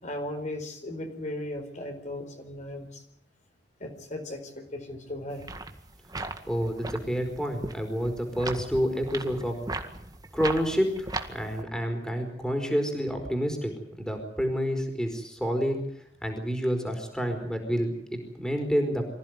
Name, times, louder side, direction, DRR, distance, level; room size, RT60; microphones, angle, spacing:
voice 1, 0.0-3.0 3.8-5.4, left 1 dB, 45° left, 4 dB, 4.5 m, -37 dB
sound 1, 5.3-11.6, right 2 dB, 20° right, 1.9 m, -37 dB
voice 2, 6.5-9.6 10.3-13.7 14.0-15.8 16.2-19.1, equal, 5° left, 4 dB, 4.6 m, -28 dB
25.5 x 16.0 x 9.5 m, 0.70 s
head